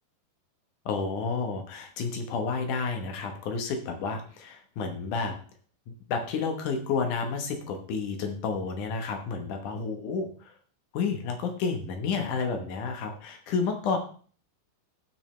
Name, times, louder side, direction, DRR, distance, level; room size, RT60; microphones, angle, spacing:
voice 1, 0.9-5.4 6.1-10.5 10.9-14.0, left 5 dB, 70° left, 4 dB, 1.9 m, -30 dB
15.5 x 6.2 x 3.2 m, 0.43 s
omnidirectional pair, 5.1 m